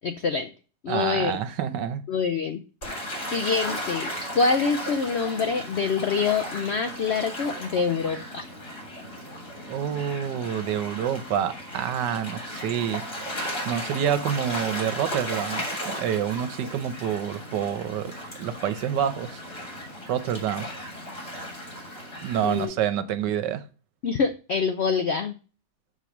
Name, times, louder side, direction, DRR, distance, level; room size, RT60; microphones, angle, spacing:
voice 1, 0.0-0.5 0.8-1.4 2.1-2.6 3.3-8.5 22.4-22.7 24.0-25.3, left 5 dB, 75° left, 0.6 m, -25 dB
voice 2, 0.9-2.1 9.7-13.0 13.7-18.1 18.4-19.4 20.1-20.7 22.2-23.6, right 9 dB, 80° right, 1.4 m, -27 dB
Gull seagull / Waves surf, 2.8-22.6, equal, 35° left, 3.3 m, -36 dB
6.8 x 4.5 x 5.9 m
omnidirectional pair, 1.8 m